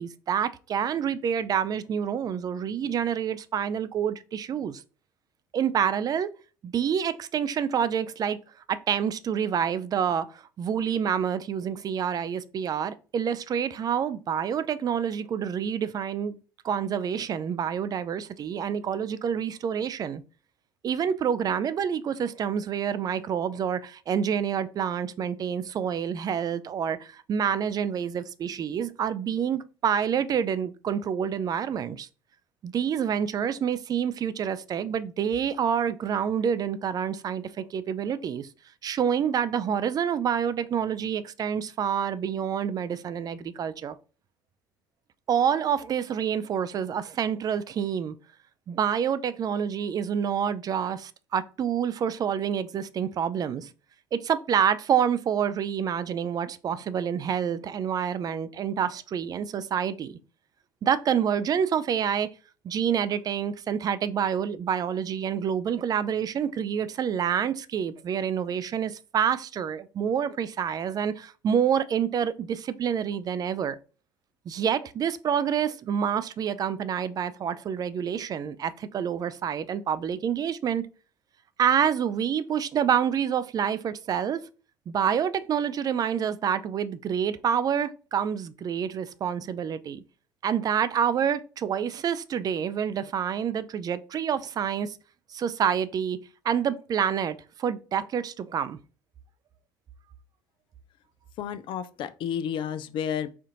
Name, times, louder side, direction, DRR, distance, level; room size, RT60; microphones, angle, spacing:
voice 1, 0.0-4.8 5.5-6.3 6.6-8.4 8.7-16.4 16.6-20.2 20.8-32.1 32.6-38.5 38.8-44.0 45.3-48.2 48.7-53.7 54.1-60.2 60.8-62.3 62.6-73.8 74.5-80.8 81.6-84.5 84.9-90.0 90.4-95.0 95.3-96.2 96.4-98.8, right 8 dB, 40° right, 0.4 m, -27 dB
voice 2, 101.4-103.3, left 8 dB, 50° left, 0.4 m, -31 dB
4.3 x 2.4 x 2.8 m
hypercardioid pair, 65°, 10 cm